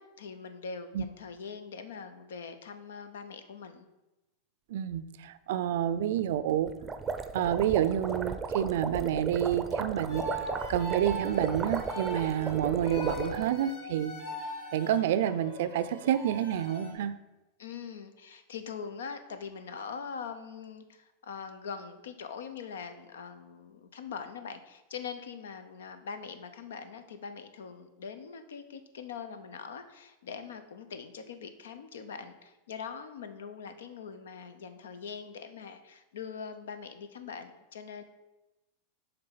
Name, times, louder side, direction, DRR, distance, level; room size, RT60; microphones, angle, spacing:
voice 1, 0.0-3.9 17.6-38.0, left 6 dB, 90° left, 9 dB, 0.6 m, -42 dB
voice 2, 4.7-6.7 7.3-10.3 10.7-14.2 14.7-17.2, right 10 dB, 70° right, 14 dB, 0.4 m, -29 dB
sound 1, 6.7-13.5, right 5 dB, 20° right, 0.5 m, -35 dB
sound 2, 10.1-16.9, right 1 dB, 65° left, 2.2 m, -40 dB
6.7 x 3.4 x 5.7 m, 1.0 s
supercardioid pair, 125°, 0 cm